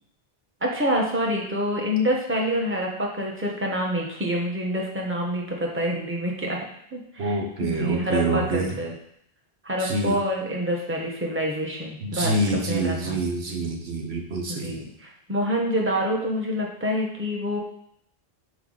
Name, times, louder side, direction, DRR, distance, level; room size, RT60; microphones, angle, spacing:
voice 1, 0.6-8.9 9.6-12.4 12.7-13.2 14.5-17.6, equal, 10° right, -2 dB, 1.2 m, -27 dB
voice 2, 7.2-8.8 9.8-10.2 12.0-14.8, right 2 dB, 85° right, 2 dB, 1.3 m, -26 dB
7.0 x 4.8 x 4.0 m, 0.70 s
omnidirectional pair, 1.0 m